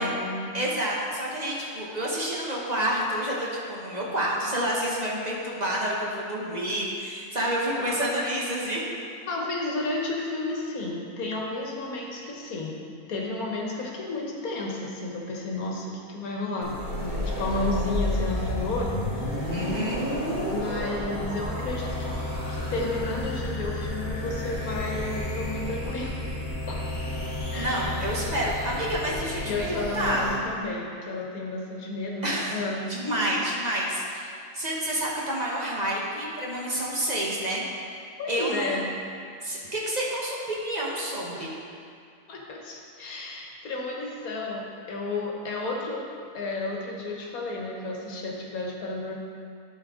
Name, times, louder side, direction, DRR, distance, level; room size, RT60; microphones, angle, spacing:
voice 1, 0.0-0.6 6.5-6.7 7.7-8.0 9.3-12.7 13.1-19.5 20.5-22.1 22.5-26.2 26.7-26.8 27.5-28.0 29.5-33.2 38.2-38.8 41.4-41.5 42.3-46.0 46.3-49.1, left 2 dB, 70° left, -1 dB, 1.5 m, -32 dB
voice 2, 0.5-8.8 19.5-20.0 27.6-30.2 32.2-32.6 32.9-37.6 38.3-38.8 39.4-41.5, right 1 dB, 30° right, -5 dB, 1.0 m, -29 dB
sound 1, 16.6-30.3, left 1 dB, 25° left, 1.9 m, -31 dB
11.5 x 4.2 x 3.6 m, 2.3 s
omnidirectional pair, 1.6 m